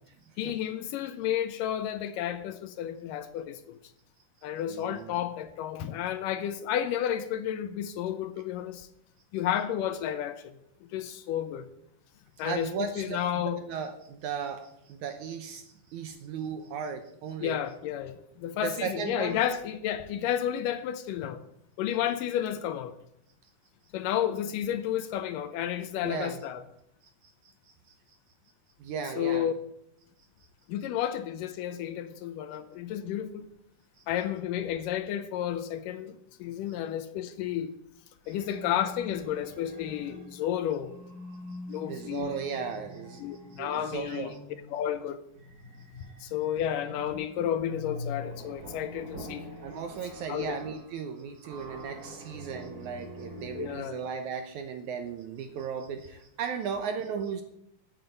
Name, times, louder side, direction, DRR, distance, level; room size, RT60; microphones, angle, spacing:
voice 1, 0.4-3.8 4.4-8.9 9.3-10.5 10.9-11.7 12.4-13.6 17.4-21.4 21.8-22.9 23.9-26.6 29.2-29.5 30.7-33.5 34.1-37.7 38.3-40.9 41.7-42.4 43.2-44.3 44.7-45.2 46.2-49.5 50.3-50.6 53.5-54.0, left 10 dB, 80° left, 2.1 m, -31 dB
voice 2, 4.7-5.2 12.4-17.6 18.6-19.4 26.0-26.4 27.2-27.3 28.8-29.5 41.9-43.2 43.5-44.4 49.6-57.4, right 6 dB, 75° right, 1.9 m, -36 dB
sound 1, 38.2-40.4 40.7-53.8, left 1 dB, 30° right, 2.3 m, -44 dB
9.2 x 8.0 x 9.1 m
omnidirectional pair, 4.2 m